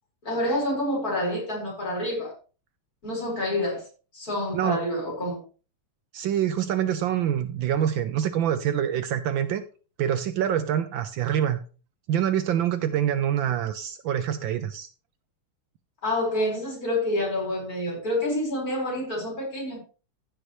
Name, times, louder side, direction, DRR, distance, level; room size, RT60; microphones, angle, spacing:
voice 1, 0.2-2.3 3.0-3.8 4.1-5.4 16.0-19.8, left 1 dB, 40° left, 5.2 m, -28 dB
voice 2, 6.1-9.6 10.0-11.6 12.1-14.9, right 10 dB, 75° right, 1.3 m, -25 dB
15.0 x 6.4 x 3.1 m
omnidirectional pair, 2.4 m